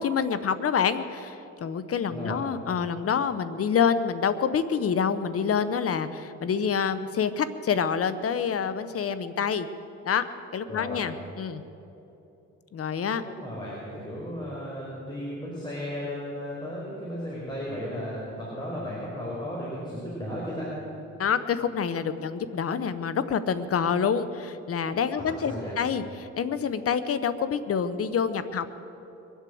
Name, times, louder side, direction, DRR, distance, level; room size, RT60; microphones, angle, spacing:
voice 1, 0.0-9.7 10.0-10.2 10.5-11.6 12.7-13.3 21.2-28.8, left 7 dB, 50° left, 13 dB, 1.0 m, -27 dB
voice 2, 2.1-2.4 10.7-11.1 13.1-20.7 25.2-25.7, equal, 15° left, -6 dB, 5.0 m, -35 dB
22.5 x 8.3 x 7.8 m, 2.9 s
cardioid pair, 90°, 30 cm